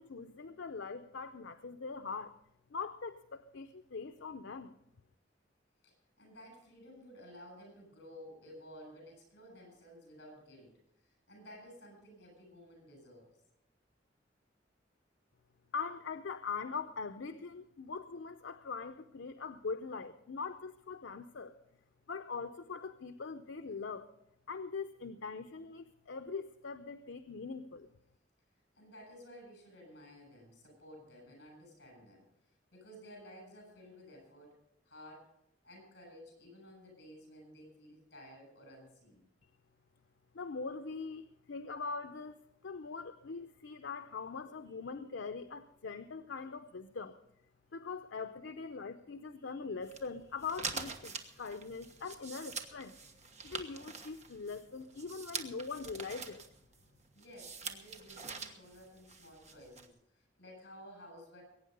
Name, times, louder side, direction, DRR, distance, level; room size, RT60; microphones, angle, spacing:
voice 1, 0.0-2.4 2.7-4.7 15.7-21.5 22.1-24.1 24.5-27.9 40.3-47.2 47.7-52.9 53.4-56.4, left 4 dB, 80° left, 9 dB, 0.6 m, -42 dB
voice 2, 5.8-10.7 11.0-13.3 28.8-32.2 32.7-34.6 34.8-35.3 35.6-39.2 57.1-61.4, equal, 60° left, 4 dB, 7.5 m, -54 dB
sound 1, 49.8-59.9, right 5 dB, 40° right, 1.3 m, -45 dB
21.5 x 9.3 x 5.4 m, 0.80 s
head